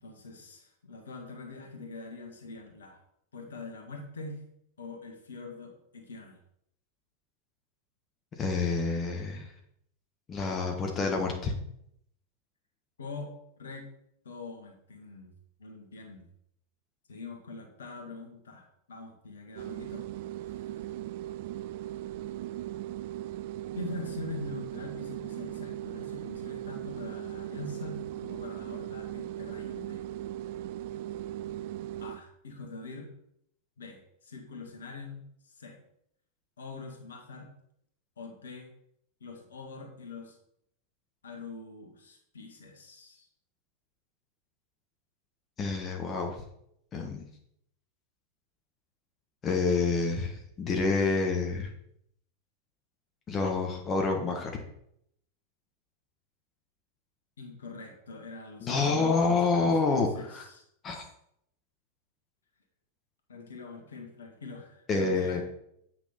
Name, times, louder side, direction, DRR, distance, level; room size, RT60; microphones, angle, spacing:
voice 1, 0.0-3.0 3.3-4.4 4.8-6.4 13.0-13.9 14.3-15.3 15.6-16.3 17.1-20.1 20.4-20.7 23.8-30.1 32.0-33.1 33.8-35.8 36.6-37.5 38.2-38.7 39.2-40.4 41.2-43.3 57.4-60.6 63.3-65.4, left 3 dB, 65° left, 3 dB, 1.7 m, -44 dB
voice 2, 8.4-9.5 10.3-11.5 45.6-46.4 46.9-47.2 49.4-51.7 53.3-54.5 58.6-60.4 60.8-61.0 64.9-65.4, left 4 dB, 25° left, 2 dB, 1.4 m, -28 dB
sound 1, 19.5-32.2, right 13 dB, 50° right, 0.4 m, -38 dB
8.6 x 6.1 x 4.3 m, 0.73 s
figure-of-eight pair, 90°, 0 cm